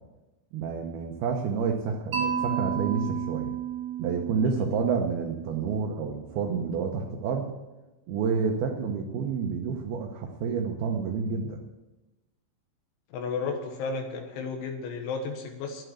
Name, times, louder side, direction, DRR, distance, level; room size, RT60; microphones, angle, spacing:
voice 1, 0.5-3.5 4.0-7.5 8.1-11.6, right 5 dB, 70° right, 1 dB, 2.6 m, -29 dB
Mallet percussion, 2.1-6.1, right 8 dB, 40° right, 2.1 m, -33 dB
voice 2, 13.1-15.8, left 4 dB, 85° left, 3 dB, 3.7 m, -33 dB
11.5 x 9.4 x 8.2 m, 1.1 s
omnidirectional pair, 5.3 m